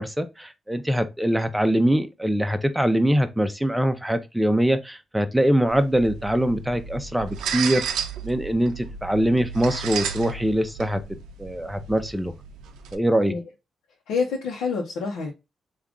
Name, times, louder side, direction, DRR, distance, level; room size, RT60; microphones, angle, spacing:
voice 1, 0.0-7.8 8.2-11.0 11.4-12.3 12.9-13.3, right 1 dB, 5° right, 0.6 m, -23 dB
sound 1, 5.7-13.0, right 7 dB, 85° right, 0.5 m, -33 dB
voice 2, 14.1-15.3, left 5 dB, 85° left, 0.8 m, -27 dB
3.5 x 2.4 x 3.6 m
supercardioid pair, 55°, 0 cm